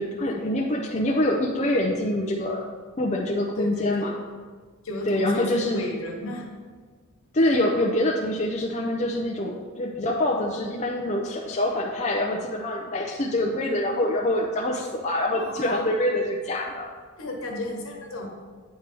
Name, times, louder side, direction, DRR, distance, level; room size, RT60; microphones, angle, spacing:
voice 1, 0.0-2.6 3.0-4.1 5.1-5.8 7.3-16.9, left 1 dB, 30° left, 0 dB, 0.5 m, -25 dB
voice 2, 3.6-4.2 4.8-6.5 15.4-16.1 17.2-18.3, left 1 dB, 75° left, 0 dB, 1.2 m, -33 dB
8.9 x 3.4 x 5.2 m, 1.5 s
head